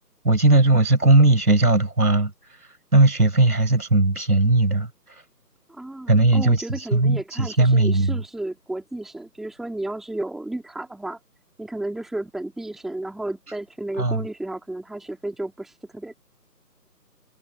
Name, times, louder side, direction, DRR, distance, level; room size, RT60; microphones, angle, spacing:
voice 1, 0.2-2.3 2.9-4.9 6.1-6.6 6.9-8.2 14.0-14.3, right 2 dB, 65° right, 6.6 m, -18 dB
voice 2, 5.7-11.2 11.6-16.1, right 1 dB, ahead, 3.8 m, -33 dB
figure-of-eight pair, 160°, 49 cm